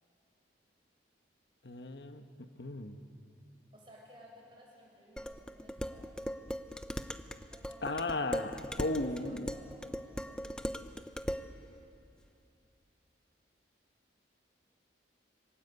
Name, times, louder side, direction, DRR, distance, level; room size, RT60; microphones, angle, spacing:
voice 1, 1.6-2.2 2.6-3.0 7.8-9.5, left 2 dB, 60° left, 7 dB, 1.2 m, -35 dB
voice 2, 3.7-6.1 7.5-8.0 8.8-10.7, equal, 25° right, -2 dB, 7.5 m, -57 dB
Dishes pots and pans, 5.2-11.5, equal, 5° left, 0.7 m, -39 dB
27.5 x 25.0 x 8.2 m, 2.7 s
head